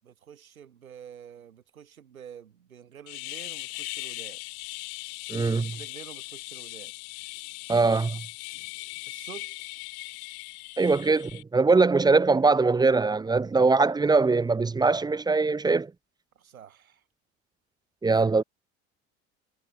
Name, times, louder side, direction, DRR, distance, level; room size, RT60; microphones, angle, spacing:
voice 1, 0.0-4.4 5.3-6.9 9.1-9.7 16.3-17.0, right 8 dB, 85° right, 7.8 m, -48 dB
sound 1, 3.1-11.4, left 29 dB, 60° left, 7.0 m, -39 dB
voice 2, 5.3-5.6 7.7-8.2 10.8-15.9 18.0-18.4, right 3 dB, 10° right, 0.5 m, -22 dB
hypercardioid pair, 70°, 41 cm